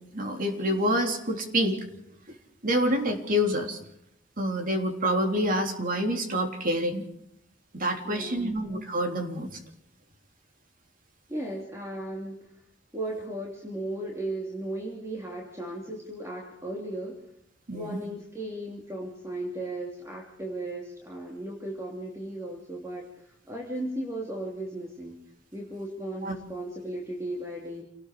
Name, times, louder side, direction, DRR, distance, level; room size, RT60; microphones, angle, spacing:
voice 1, 0.1-1.8 2.6-3.8 4.4-7.0 7.7-9.5 17.7-18.0 26.2-26.3, equal, 50° right, 3 dB, 3.5 m, -27 dB
voice 2, 8.0-8.6 11.3-12.5 12.9-17.3 17.7-25.2 25.5-27.8, right 1 dB, 15° right, -1 dB, 2.8 m, -36 dB
27.5 x 19.0 x 4.9 m, 0.74 s
head